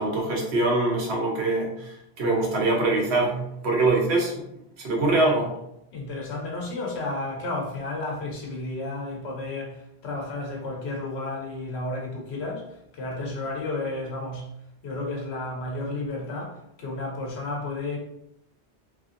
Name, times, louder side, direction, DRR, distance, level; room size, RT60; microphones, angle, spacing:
voice 1, 0.0-4.3 4.8-5.5, right 2 dB, 85° right, 1.0 m, -24 dB
voice 2, 5.9-14.5 14.8-18.0, left 2 dB, 85° left, 1.0 m, -32 dB
2.9 x 2.5 x 2.5 m
omnidirectional pair, 1.1 m